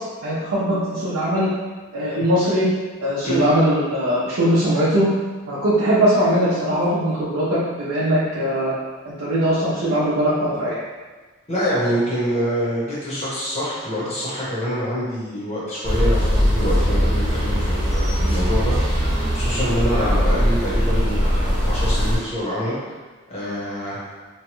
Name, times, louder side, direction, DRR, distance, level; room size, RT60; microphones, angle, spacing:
voice 1, 0.2-1.5 1.9-2.7 3.0-5.1 5.5-8.7 9.0-10.8 20.0-20.2, equal, 80° right, -10 dB, 0.6 m, -20 dB
voice 2, 11.5-19.1 19.3-22.8 23.3-24.0, equal, 30° left, -8 dB, 0.9 m, -25 dB
sound 1, 15.8-22.2, equal, 45° right, 1.1 m, -20 dB
3.0 x 2.2 x 3.0 m, 1.3 s
head